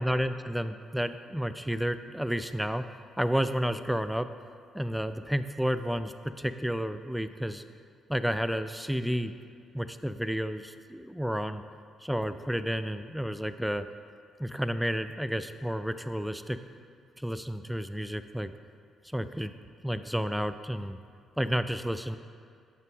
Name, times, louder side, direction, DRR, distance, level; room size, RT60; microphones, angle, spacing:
voice 1, 0.0-2.9 3.2-4.3 4.7-7.6 8.1-9.3 9.7-11.6 12.0-13.9 14.4-16.6 17.2-18.5 19.1-19.5 19.8-21.0 21.4-22.2, equal, ahead, 11 dB, 0.3 m, -31 dB
9.5 x 5.6 x 3.5 m, 2.2 s
cardioid pair, 90°, 0 cm